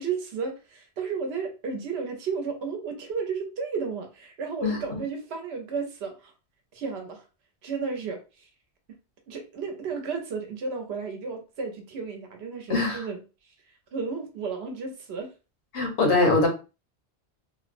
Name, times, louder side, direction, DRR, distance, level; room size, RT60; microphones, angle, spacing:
voice 1, 0.0-6.3 6.7-7.2 7.6-8.2 9.3-13.2 13.9-15.3, right 5 dB, 75° right, 0.9 m, -33 dB
voice 2, 4.6-5.0 12.7-13.1 15.7-16.5, left 3 dB, 85° left, 1.1 m, -23 dB
2.7 x 2.0 x 2.4 m
omnidirectional pair, 1.1 m